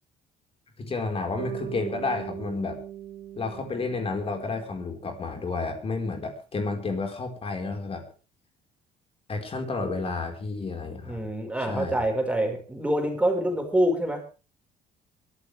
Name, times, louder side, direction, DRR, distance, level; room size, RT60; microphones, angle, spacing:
voice 1, 0.8-2.8 3.3-8.0 9.3-11.3 11.6-12.1, left 3 dB, 35° left, 3 dB, 4.8 m, -31 dB
Bass guitar, 1.4-5.6, right 11 dB, 80° right, 3.8 m, -40 dB
voice 2, 11.1-14.2, right 1 dB, 5° right, 3 dB, 5.4 m, -26 dB
23.5 x 13.5 x 3.5 m, 0.35 s
cardioid pair, 110°, 17 cm